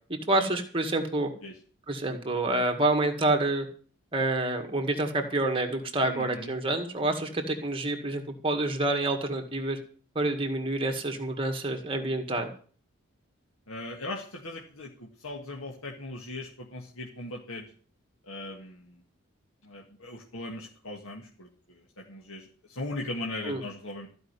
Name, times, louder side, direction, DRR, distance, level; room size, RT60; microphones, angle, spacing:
voice 1, 0.1-1.3 1.9-3.7 4.1-9.8 10.2-12.5 23.5-23.6, right 2 dB, 25° right, 4 dB, 1.9 m, -28 dB
voice 2, 6.1-6.5 13.7-17.7 18.2-19.0 19.6-24.1, left 2 dB, 90° left, -1 dB, 2.0 m, -39 dB
14.5 x 5.5 x 9.7 m, 0.43 s
head